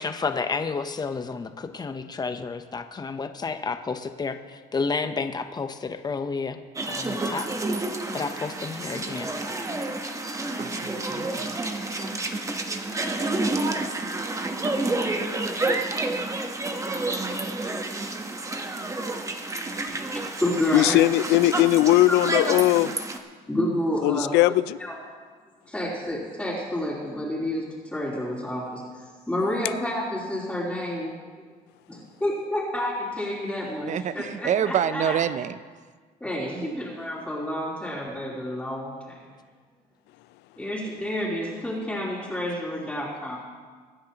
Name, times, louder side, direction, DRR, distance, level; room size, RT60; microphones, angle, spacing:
voice 1, 0.0-7.5 8.1-9.3, left 4 dB, 25° left, 8 dB, 0.8 m, -31 dB
sound 1, 6.8-23.2, right 2 dB, 20° right, 1.1 m, -29 dB
voice 2, 10.6-11.6 33.9-35.6 36.4-36.7, right 9 dB, 45° right, 14 dB, 0.6 m, -27 dB
voice 3, 19.9-21.0 22.1-22.2 23.5-24.3 24.8-24.9 25.7-27.7 27.9-31.1 31.9-35.2 36.2-39.2 40.6-43.4, left 1 dB, 5° left, -8 dB, 3.6 m, -29 dB
voice 4, 20.7-23.0 24.0-24.8, left 16 dB, 85° left, 17 dB, 0.4 m, -19 dB
24.0 x 10.0 x 3.0 m, 1.5 s
cardioid pair, 110°, 17 cm